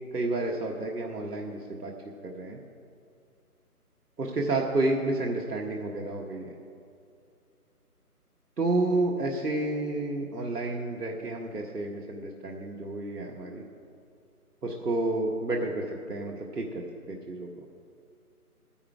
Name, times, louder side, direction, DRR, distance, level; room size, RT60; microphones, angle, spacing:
voice 1, 0.0-1.9 2.2-2.6 4.2-6.5 8.6-13.6 14.6-17.5, right 2 dB, 85° right, 0 dB, 1.4 m, -30 dB
12.5 x 10.0 x 4.7 m, 2.4 s
figure-of-eight pair, 175°, 46 cm